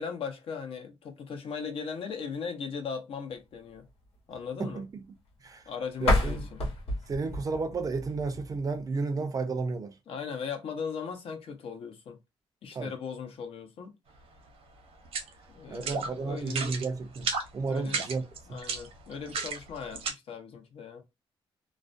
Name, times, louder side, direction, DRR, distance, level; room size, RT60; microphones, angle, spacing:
voice 1, 0.0-3.9 4.3-4.8 5.7-6.6 10.1-12.2 12.6-13.9 15.5-16.8 17.7-18.1 18.5-21.0, left 6 dB, 70° left, 0.6 m, -38 dB
voice 2, 4.6-5.0 5.4-5.6 6.0-6.4 7.1-10.0 12.7-12.9 15.7-18.6, right 4 dB, 35° right, 0.4 m, -32 dB
sound 1, 6.0-8.8, left 1 dB, 85° left, 1.0 m, -30 dB
sound 2, 15.1-15.3 15.8-16.1 16.4-16.8 17.1-17.5 17.9-20.1, right 5 dB, 75° right, 0.7 m, -32 dB
2.4 x 2.1 x 2.5 m
cardioid pair, 135°, 10 cm